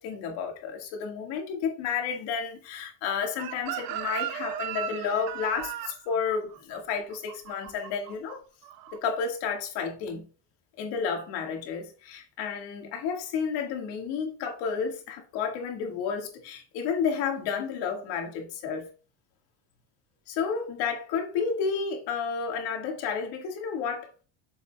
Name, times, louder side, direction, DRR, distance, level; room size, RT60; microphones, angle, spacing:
voice 1, 0.0-8.4 8.9-10.3 10.8-18.9 20.3-24.1, left 6 dB, 80° left, 1.9 m, -31 dB
Chicken rooster, 3.4-8.3 8.6-9.0, right 12 dB, 60° right, 0.8 m, -36 dB
7.4 x 6.9 x 2.3 m
cardioid pair, 155°, 38 cm